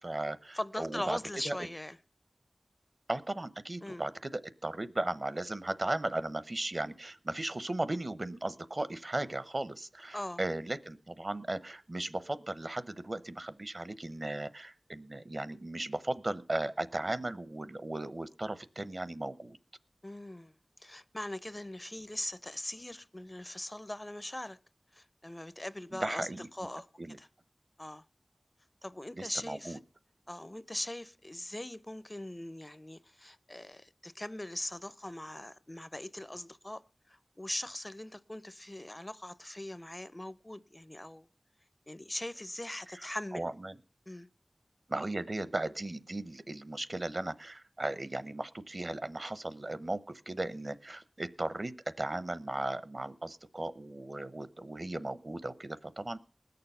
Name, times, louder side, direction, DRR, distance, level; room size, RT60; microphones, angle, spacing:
voice 1, 0.0-1.2 1.4-1.6 3.1-19.6 25.9-26.5 27.0-27.2 29.1-29.8 42.9-43.0 43.3-43.8 44.9-56.2, right 2 dB, 55° right, 0.8 m, -36 dB
voice 2, 0.5-2.0 3.8-4.0 10.1-10.4 20.0-20.5 20.8-24.6 24.9-26.3 26.5-26.9 27.2-27.3 27.8-28.1 28.8-29.8 30.3-41.3 41.9-43.5 44.1-44.3, left 1 dB, 25° left, 0.5 m, -41 dB
19.5 x 6.8 x 5.4 m
wide cardioid pair, 50°, 0 cm